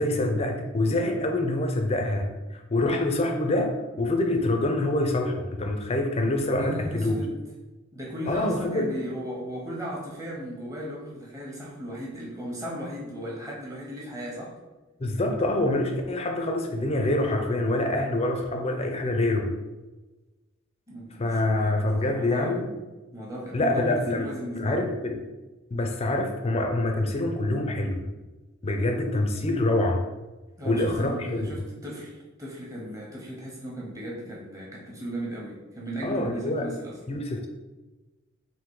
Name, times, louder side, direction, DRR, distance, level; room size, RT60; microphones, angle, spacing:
voice 1, 0.0-7.2 8.3-9.0 15.0-19.5 21.2-22.7 23.5-24.3 24.5-25.2 25.7-28.1 28.6-30.0 30.6-31.5 36.0-36.7 37.1-37.5, left 2 dB, 30° left, 4 dB, 0.4 m, -26 dB
voice 2, 6.5-7.3 7.9-14.5 20.9-22.7 23.1-24.9 30.6-37.0, equal, 15° right, -4 dB, 0.9 m, -36 dB
3.6 x 2.6 x 4.6 m, 1.2 s
head